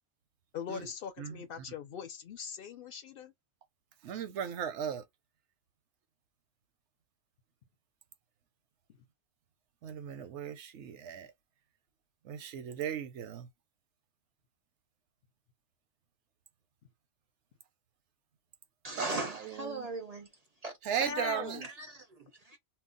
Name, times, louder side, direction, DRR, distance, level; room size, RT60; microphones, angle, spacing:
voice 1, 0.5-3.3 21.0-21.7, left 7 dB, 60° left, 0.7 m, -41 dB
voice 2, 4.0-5.0 9.8-11.3 12.2-13.5 19.0-19.1 19.4-19.9 20.8-21.7, right 8 dB, 80° right, 0.9 m, -36 dB
voice 3, 18.8-20.3 20.6-20.7 21.6-22.6, right 2 dB, 50° right, 0.5 m, -39 dB
2.3 x 2.0 x 3.7 m
omnidirectional pair, 1.2 m